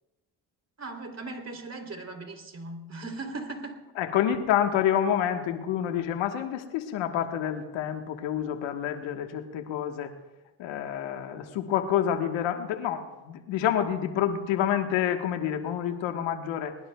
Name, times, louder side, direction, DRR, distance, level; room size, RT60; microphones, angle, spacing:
voice 1, 0.8-3.8, right 3 dB, 35° right, 5 dB, 3.3 m, -38 dB
voice 2, 4.0-10.1 10.6-16.7, left 10 dB, 85° left, 6 dB, 1.4 m, -28 dB
23.0 x 20.5 x 2.3 m, 1.1 s
supercardioid pair, 60°, 44 cm